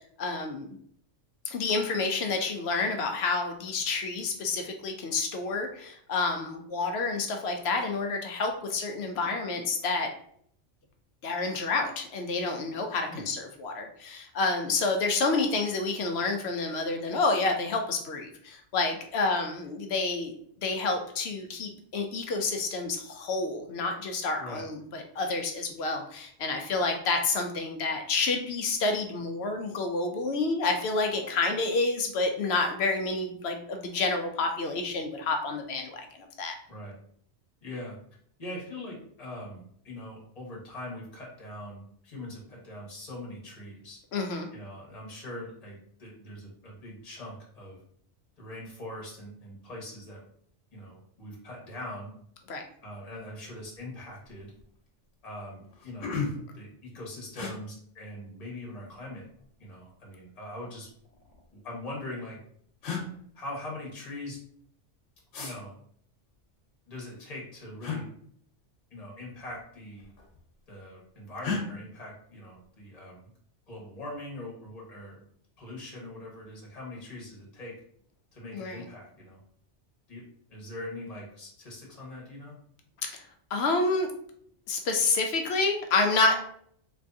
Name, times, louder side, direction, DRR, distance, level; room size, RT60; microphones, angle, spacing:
voice 1, 0.2-0.7 1.5-10.1 11.2-36.1 36.4-36.5 44.1-44.5 52.5-52.6 78.5-78.8 83.0-83.2 83.5-84.1 84.7-86.4, left 3 dB, 65° left, 4 dB, 0.8 m, -29 dB
voice 2, 37.6-38.0 38.4-44.0 44.5-47.8 48.4-50.2 50.7-52.1 52.8-54.5 55.2-59.2 59.6-60.9 61.5-62.4 63.3-64.4 65.4-65.7 66.9-68.0 68.9-70.1 70.7-73.3 73.7-75.2 75.6-77.7 78.3-79.4 80.1-80.2 80.5-82.5, left 1 dB, 35° left, -3 dB, 1.2 m, -42 dB
sound 1, 53.7-53.9 54.2-54.7 55.2-55.3 55.6-56.6 57.3-57.5 58.8-59.4 60.6-61.4 62.3-62.4 62.8-63.1 65.3-65.5 67.8-68.0 69.4-69.6 69.9-70.5 71.4-71.6, left 5 dB, 85° left, 1.2 m, -35 dB
3.5 x 3.1 x 2.6 m, 0.64 s
omnidirectional pair, 1.2 m